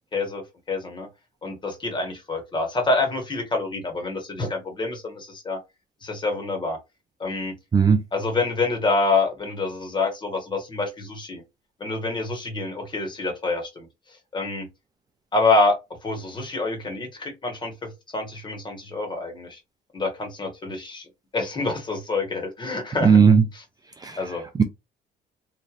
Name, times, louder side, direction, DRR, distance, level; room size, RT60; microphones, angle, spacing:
voice 1, 0.1-1.1 1.4-5.6 6.0-6.8 7.2-7.5 8.1-11.4 11.8-13.9 14.3-14.7 15.3-15.8 16.0-17.7 18.1-19.6 19.9-23.2 23.5-23.6 24.2-24.4, left 3 dB, 30° left, 1.3 m, -26 dB
voice 2, 23.0-23.4 24.0-24.2, right 6 dB, 20° right, 0.4 m, -16 dB
3.2 x 2.5 x 2.5 m
cardioid pair, 110°, 17 cm